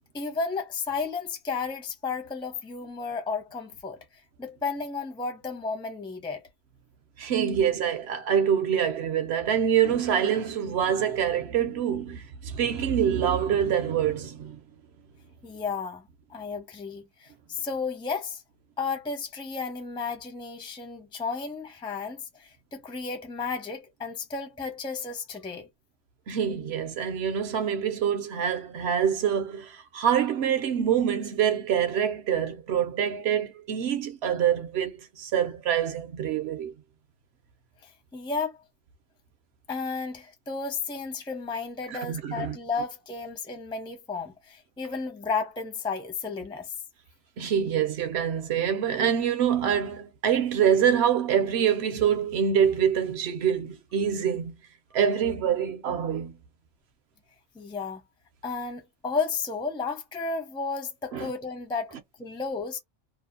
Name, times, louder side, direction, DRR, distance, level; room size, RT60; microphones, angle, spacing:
voice 1, 0.1-4.0 4.4-6.4 15.4-18.4 18.8-25.7 37.8-38.6 39.7-46.7 57.5-58.0 58.4-62.8, left 4 dB, 5° left, 0.4 m, -33 dB
voice 2, 7.2-14.6 26.3-36.7 41.9-42.6 47.4-54.5 54.9-56.4 61.1-61.3, right 8 dB, 65° right, 0.9 m, -25 dB
2.7 x 2.1 x 2.5 m
omnidirectional pair, 1.2 m